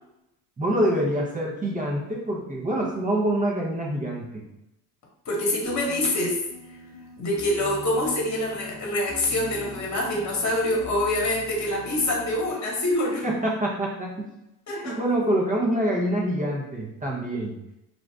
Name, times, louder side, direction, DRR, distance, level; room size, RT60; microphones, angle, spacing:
voice 1, 0.6-4.4 13.2-14.1 14.7-17.5, right 1 dB, 20° right, -3 dB, 0.8 m, -26 dB
voice 2, 5.2-6.4 7.2-13.2 14.7-15.0, left 1 dB, 40° left, -2 dB, 1.3 m, -25 dB
sound 1, 5.6-12.5, left 2 dB, 20° left, 0.8 m, -43 dB
2.6 x 2.4 x 3.3 m, 0.86 s
supercardioid pair, 75°, 44 cm